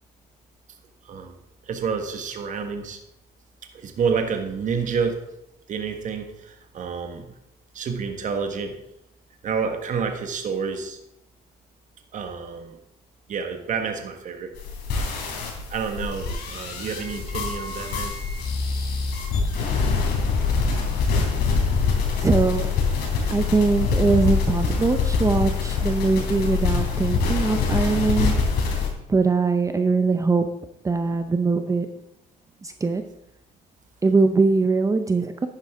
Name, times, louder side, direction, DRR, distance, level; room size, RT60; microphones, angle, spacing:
voice 1, 1.0-1.3 1.7-3.0 3.7-5.2 5.7-7.4 7.7-8.8 9.4-11.0 12.1-12.8 13.3-14.5 15.7-18.1, right 6 dB, 50° right, 6 dB, 1.5 m, -29 dB
sound 1, 14.5-28.9, left 5 dB, 75° left, 3.3 m, -24 dB
voice 2, 22.2-22.7 23.3-28.3 29.1-30.5 30.8-31.9 32.6-33.0 34.0-35.5, right 4 dB, 20° right, 8 dB, 0.7 m, -21 dB
11.0 x 9.6 x 3.7 m, 0.85 s
cardioid pair, 110°, 17 cm